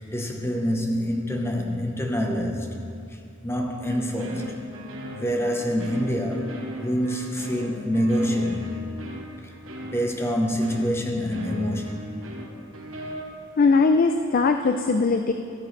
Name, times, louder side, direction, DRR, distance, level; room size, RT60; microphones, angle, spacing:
voice 1, 0.1-2.7 3.4-4.6 5.1-8.7 9.9-12.0, equal, 15° left, 2 dB, 0.9 m, -26 dB
sound 1, 3.8-13.2, equal, 85° right, 1.1 m, -39 dB
voice 2, 13.6-15.3, left 4 dB, 45° left, 7 dB, 0.4 m, -20 dB
13.5 x 9.2 x 3.2 m, 2.5 s
head